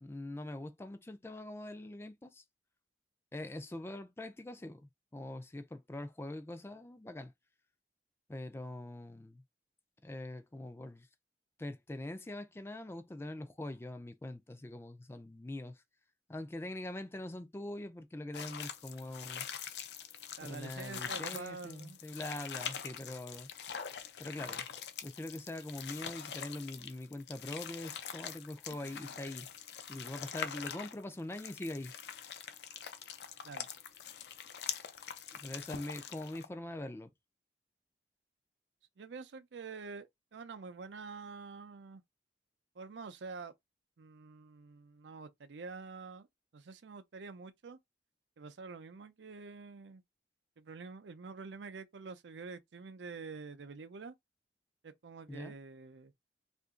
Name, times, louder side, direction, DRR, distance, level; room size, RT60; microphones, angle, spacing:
voice 1, 0.0-2.4 3.3-7.3 8.3-9.4 10.0-11.1 11.6-15.8 16.3-19.5 20.4-23.5 24.2-24.7 25.0-29.5 29.9-31.9 35.4-37.1 55.3-55.5, left 1 dB, 15° left, 0.4 m, -43 dB
sound 1, 18.3-36.4, left 8 dB, 70° left, 0.5 m, -44 dB
voice 2, 20.4-22.0 33.4-33.7 39.0-42.0 42.7-43.5 44.0-46.3 46.5-47.8 48.4-50.0 50.6-54.1 54.8-56.1, right 4 dB, 90° right, 0.5 m, -47 dB
2.8 x 2.5 x 3.6 m
head